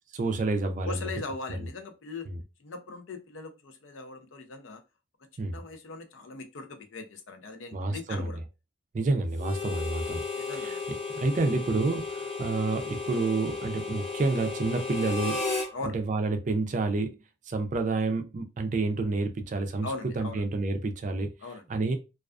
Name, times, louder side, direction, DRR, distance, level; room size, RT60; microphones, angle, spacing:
voice 1, 0.1-1.1 1.6-1.7 2.3-2.4 5.4-5.6 7.7-8.4 8.9-10.2 10.5-10.8 11.2-15.4 15.8-17.2 17.5-19.9 20.2-21.3 21.7-22.0, right 3 dB, 40° right, 0.4 m, -29 dB
voice 2, 0.8-2.3 2.6-4.8 5.5-8.4 10.4-10.8 15.7-16.0 19.8-20.4 21.4-21.6, left 3 dB, 80° left, 0.5 m, -40 dB
Harmonica, 9.4-15.7, left 4 dB, 35° left, 1.0 m, -34 dB
2.3 x 2.3 x 2.4 m
head